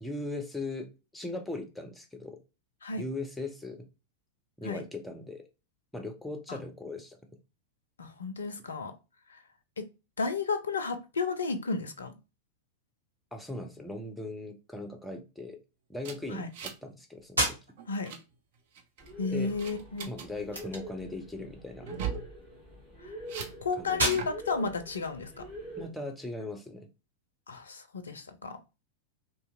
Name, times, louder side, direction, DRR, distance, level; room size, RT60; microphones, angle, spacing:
voice 1, 0.0-2.4 2.9-3.8 4.6-5.5 5.9-7.2 13.3-15.6 15.9-17.6 19.3-19.5 20.1-21.9 23.8-24.0 25.8-26.9, left 2 dB, 5° left, 5 dB, 0.6 m, -39 dB
voice 2, 8.0-8.9 9.3-9.4 9.8-9.9 10.2-12.2 16.3-16.5 17.9-18.2 19.2-20.1 23.0-23.2 23.6-25.5 27.5-28.6, left 4 dB, 70° left, 9 dB, 0.4 m, -33 dB
sound 1, 16.0-16.9 17.2-17.4 17.8-18.2 18.7-19.1 19.6-20.3 21.8-22.3 23.3-23.5 24.0-24.3, right 8 dB, 50° right, 0.5 m, -38 dB
sound 2, 17.2-26.2, right 1 dB, 80° right, 1.0 m, -37 dB
sound 3, 19.0-25.9, equal, 25° right, 1.3 m, -45 dB
2.8 x 2.5 x 2.3 m, 0.29 s
figure-of-eight pair, 90°, 0 cm